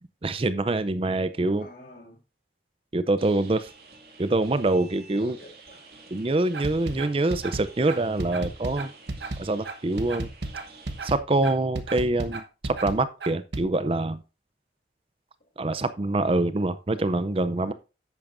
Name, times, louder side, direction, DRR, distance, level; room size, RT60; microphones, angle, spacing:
voice 1, 0.2-1.7 2.9-3.7 4.2-5.4 6.1-8.9 9.4-10.3 11.0-14.2 15.6-17.7, right 2 dB, 30° right, 0.5 m, -25 dB
voice 2, 1.6-2.2 5.2-5.9 15.7-15.9 17.6-17.7, left 1 dB, 55° left, 3.3 m, -48 dB
sound 1, 3.2-11.2, right 3 dB, 60° right, 2.3 m, -50 dB
sound 2, 6.5-13.6, right 2 dB, 80° right, 1.2 m, -33 dB
10.5 x 8.8 x 2.6 m
head